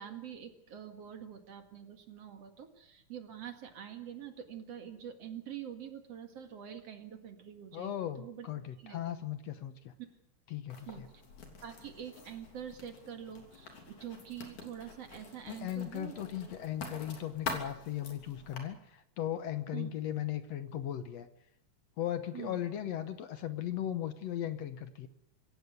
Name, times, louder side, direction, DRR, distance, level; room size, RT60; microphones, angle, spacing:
voice 1, 0.0-8.5 8.8-9.1 10.0-10.1 10.9-11.0 11.6-16.2 19.7-19.9 22.3-22.6, right 9 dB, 55° right, 6 dB, 2.9 m, -45 dB
voice 2, 7.7-9.9 10.5-11.1 15.5-21.3 22.0-25.1, left 11 dB, 65° left, 10 dB, 2.0 m, -37 dB
Writing, 10.7-18.6, left 4 dB, 80° left, 4.7 m, -46 dB
26.0 x 15.5 x 8.1 m, 0.79 s
omnidirectional pair, 3.4 m